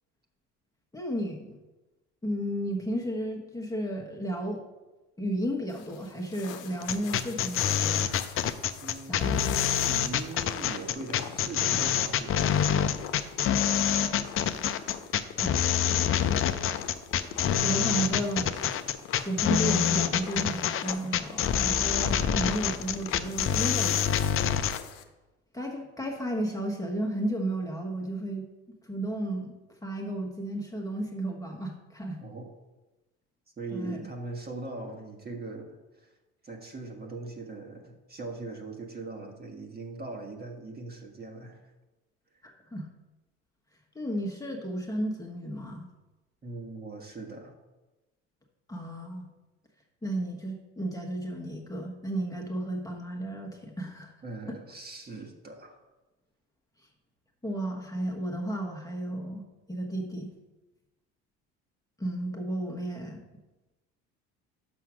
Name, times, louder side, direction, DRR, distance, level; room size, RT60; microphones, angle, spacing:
voice 1, 0.9-1.6 2.2-4.6 5.2-8.0 9.1-9.4 15.4-16.3 17.6-18.5 19.2-24.1 24.4-24.5 25.5-28.5 28.8-29.5 29.8-32.2 33.7-34.0 42.4-42.9 43.9-45.9 48.7-49.3 50.0-54.1 54.5-54.6 57.4-60.3 62.0-63.2, right 1 dB, 10° left, 0 dB, 1.2 m, -33 dB
sound 1, 5.7-25.0, left 9 dB, 65° left, 0.9 m, -44 dB
sound 2, 6.8-24.8, left 9 dB, 40° left, 0.6 m, -26 dB
voice 2, 8.8-9.5 9.8-13.1 32.2-32.5 33.6-36.1 36.4-41.6 46.4-47.5 54.2-55.8, right 3 dB, 30° right, 2 dB, 1.5 m, -41 dB
6.3 x 5.6 x 6.1 m, 1.1 s
supercardioid pair, 80°, 33 cm